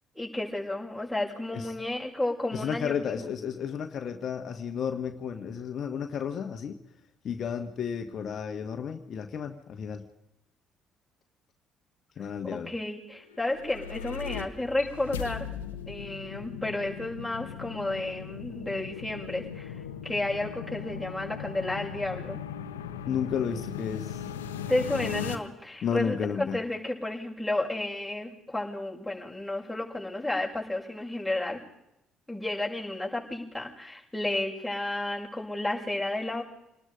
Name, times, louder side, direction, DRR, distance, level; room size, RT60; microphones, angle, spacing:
voice 1, 0.1-3.3 12.4-15.5 15.9-19.7 20.0-22.4 24.7-31.6 32.3-36.4, left 2 dB, ahead, -3 dB, 6.7 m, -32 dB
voice 2, 2.5-6.8 7.2-10.0 12.2-12.7 23.0-24.2 25.8-26.6, left 7 dB, 55° left, 6 dB, 1.5 m, -32 dB
sound 1, 13.3-25.4, left 9 dB, 85° left, 1.1 m, -38 dB
27.0 x 19.5 x 5.2 m, 0.85 s
hypercardioid pair, 50°, 0 cm